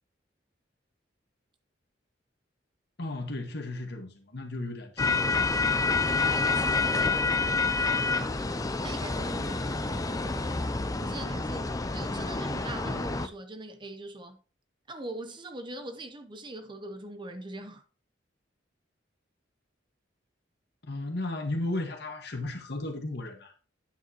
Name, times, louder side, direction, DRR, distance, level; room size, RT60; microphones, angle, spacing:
voice 1, 3.0-5.8 20.9-23.5, left 2 dB, 60° left, 1.7 m, -35 dB
sound 1, 5.0-13.3, left 3 dB, 20° left, 0.5 m, -28 dB
voice 2, 6.2-8.4 8.8-10.5 11.0-14.4 14.9-17.8, right 2 dB, 25° right, 0.9 m, -42 dB
9.2 x 7.6 x 3.0 m
head